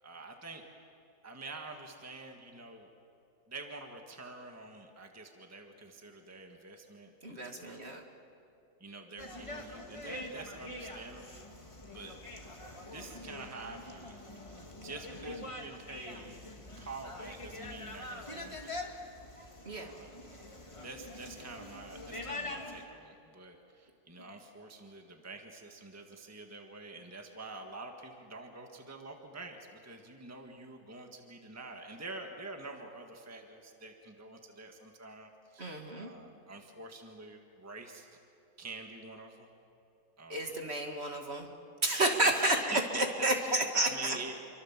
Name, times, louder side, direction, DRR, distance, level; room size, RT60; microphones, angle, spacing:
voice 1, 0.0-0.6 1.2-2.9 3.5-8.0 8.8-11.5 11.9-12.2 12.9-14.2 14.8-16.4 16.8-18.8 19.7-20.2 20.8-38.1 38.6-39.5 40.2-40.7 42.2-44.3, right 3 dB, 10° right, 3 dB, 1.7 m, -47 dB
voice 2, 7.2-8.0 19.7-19.9 35.6-36.1 40.3-41.5 41.8-42.6 42.9-44.2, right 1 dB, 40° right, 2 dB, 2.5 m, -31 dB
sound 1, 9.2-22.8, left 1 dB, 20° left, 2.0 m, -44 dB
28.0 x 24.0 x 7.4 m, 2.9 s
omnidirectional pair, 1.7 m